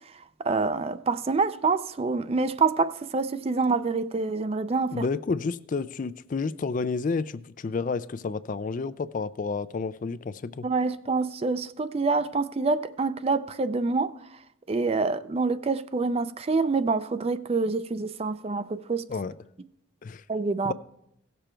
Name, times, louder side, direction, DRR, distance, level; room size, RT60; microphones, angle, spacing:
voice 1, 0.4-5.1 10.6-14.1 14.7-19.1 20.3-20.7, right 4 dB, 30° right, 0.4 m, -26 dB
voice 2, 4.9-10.7 19.1-19.3 20.0-20.2 20.6-20.7, left 4 dB, 40° left, 0.3 m, -30 dB
17.0 x 6.9 x 4.4 m
head